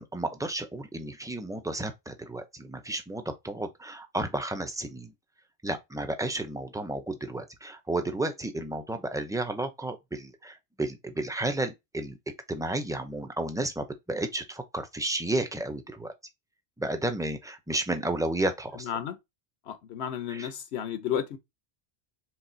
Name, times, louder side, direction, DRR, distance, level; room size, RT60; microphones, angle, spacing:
voice 1, 0.0-5.1 5.6-12.2 12.5-16.1 16.8-18.9 20.3-20.5, right 2 dB, 5° right, 0.3 m, -32 dB
voice 2, 18.8-19.2 19.7-21.4, left 9 dB, 85° left, 0.9 m, -32 dB
4.6 x 3.7 x 2.6 m
omnidirectional pair, 1.1 m